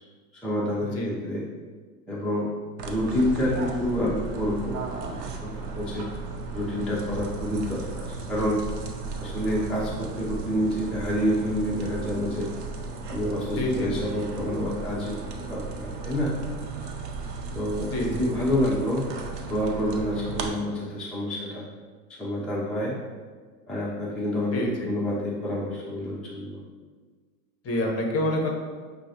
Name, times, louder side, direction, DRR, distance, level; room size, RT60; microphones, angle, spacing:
voice 1, 0.3-1.4 2.1-2.5 2.8-6.1 6.5-8.6 9.2-12.5 13.1-16.3 17.5-17.9 18.2-19.1 19.4-21.6 22.2-22.9 23.7-26.6, left 1 dB, ahead, -7 dB, 0.6 m, -28 dB
sound 1, 2.8-20.5, right 4 dB, 75° right, 0.7 m, -35 dB
voice 2, 13.6-13.9 17.9-18.3 24.5-24.9 27.6-28.5, left 1 dB, 30° left, 0 dB, 0.8 m, -26 dB
6.0 x 2.1 x 2.8 m, 1.5 s
hypercardioid pair, 90°, 48 cm